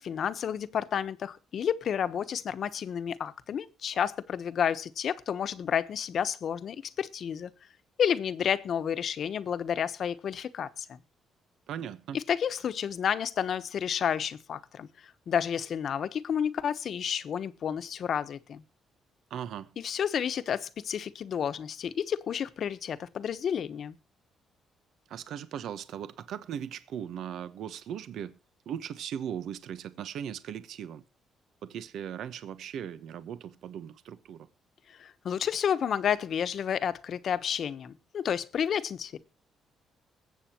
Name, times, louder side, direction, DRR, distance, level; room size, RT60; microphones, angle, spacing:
voice 1, 0.0-7.5 8.0-11.0 12.1-14.9 15.3-18.6 19.8-23.9 34.9-39.2, left 8 dB, 60° left, 1.1 m, -31 dB
voice 2, 11.7-12.2 19.3-19.7 25.1-28.4 28.7-31.0 31.6-34.5, right 9 dB, 75° right, 1.0 m, -38 dB
21.5 x 8.0 x 3.0 m
cardioid pair, 90°, 0 cm